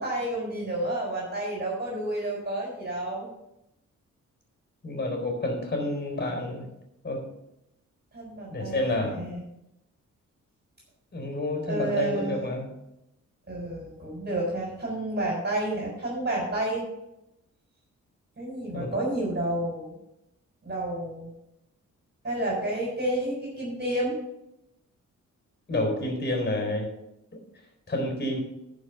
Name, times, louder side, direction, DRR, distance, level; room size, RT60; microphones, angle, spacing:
voice 1, 0.0-3.3 8.1-8.8 9.1-9.4 11.7-12.5 13.5-16.9 18.4-19.9 20.6-21.3 22.2-24.2, right 1 dB, 35° right, -3 dB, 4.0 m, -30 dB
voice 2, 4.8-6.7 7.0-7.3 8.5-9.2 11.1-12.7 18.7-19.1 25.7-26.9 27.9-28.4, left 1 dB, 35° left, 3 dB, 4.1 m, -29 dB
11.5 x 5.5 x 6.7 m, 0.86 s
wide cardioid pair, 110°, 30 cm